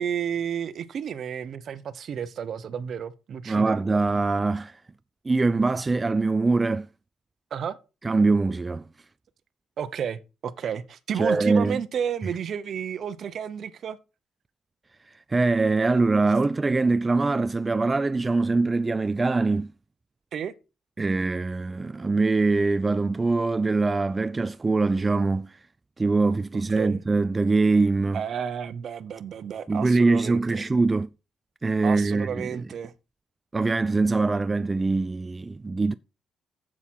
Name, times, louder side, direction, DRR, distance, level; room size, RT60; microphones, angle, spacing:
voice 1, 0.0-3.7 7.5-7.8 9.8-14.0 20.3-20.5 26.8-27.0 28.1-30.6 31.8-32.9, right 8 dB, 60° right, 0.9 m, -31 dB
voice 2, 3.5-4.8 5.2-6.9 8.0-8.8 11.2-11.8 15.3-19.7 21.0-25.6 26.0-28.2 29.7-31.1 31.6-32.6 33.5-35.9, right 3 dB, 25° right, 0.4 m, -23 dB
8.2 x 7.5 x 4.6 m
cardioid pair, 90°, 0 cm